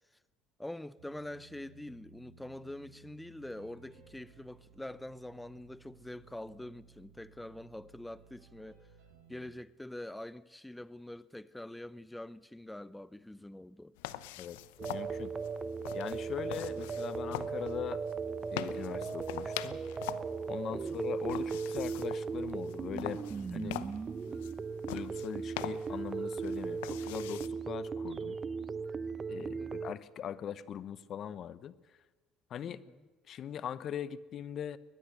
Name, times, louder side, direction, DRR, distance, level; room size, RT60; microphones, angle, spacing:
voice 1, 0.6-8.9 9.3-13.9 16.7-16.8 20.7-21.0 24.3-24.4 29.4-29.8 32.7-33.0, left 1 dB, 10° left, 0.6 m, -45 dB
sound 1, 1.0-9.5, right 6 dB, 80° right, 6.5 m, -60 dB
sound 2, 14.0-27.5, left 15 dB, 80° left, 0.7 m, -45 dB
voice 2, 14.4-15.3 15.9-18.0 18.5-19.8 20.5-23.2 23.5-23.8 24.9-28.4 29.3-31.7 32.5-32.8 33.3-34.8, left 9 dB, 55° left, 0.9 m, -41 dB
sound 3, 14.8-29.9, right 5 dB, 35° right, 0.9 m, -37 dB
22.0 x 20.0 x 6.7 m
hypercardioid pair, 60°, 0 cm